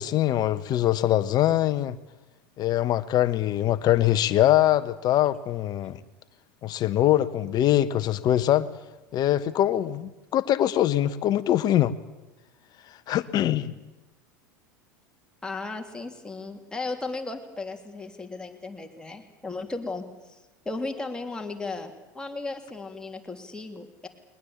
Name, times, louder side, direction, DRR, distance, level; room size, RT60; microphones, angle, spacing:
voice 1, 0.0-2.0 2.6-6.0 6.6-8.7 9.1-11.9 13.1-13.7, left 12 dB, 40° left, 14 dB, 1.3 m, -23 dB
voice 2, 15.4-20.4 20.6-24.1, left 3 dB, 10° left, 3 dB, 3.4 m, -35 dB
21.5 x 20.5 x 8.5 m, 1.1 s
figure-of-eight pair, 80°, 11 cm